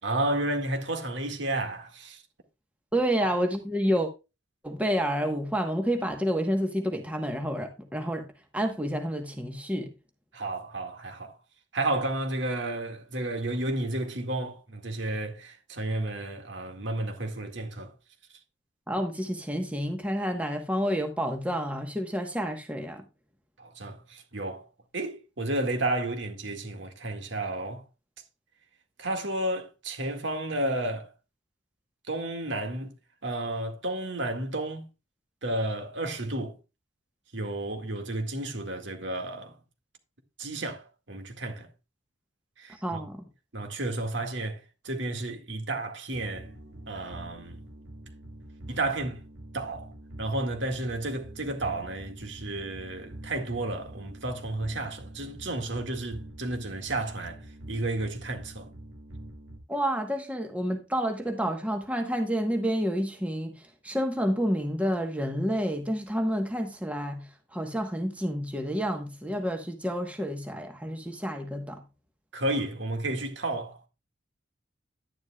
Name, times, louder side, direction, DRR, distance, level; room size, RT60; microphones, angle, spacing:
voice 1, 0.0-2.2 3.2-3.3 10.3-11.4 11.7-17.9 23.6-24.6 24.9-27.8 29.0-31.1 32.1-32.9 33.2-34.9 35.4-36.5 37.3-39.6 40.4-41.7 42.6-43.0 43.5-46.5 46.9-47.6 48.7-49.2 49.5-49.9 50.2-57.4 57.7-58.7 72.3-73.9, right 2 dB, 65° right, 2.0 m, -32 dB
voice 2, 2.9-4.1 4.6-8.3 8.5-9.9 18.9-23.0 42.7-43.2 59.7-63.5 63.8-67.3 67.5-71.8, equal, 5° right, 1.1 m, -29 dB
sound 1, 46.1-59.6, right 1 dB, 90° right, 2.0 m, -46 dB
11.0 x 10.5 x 2.3 m
head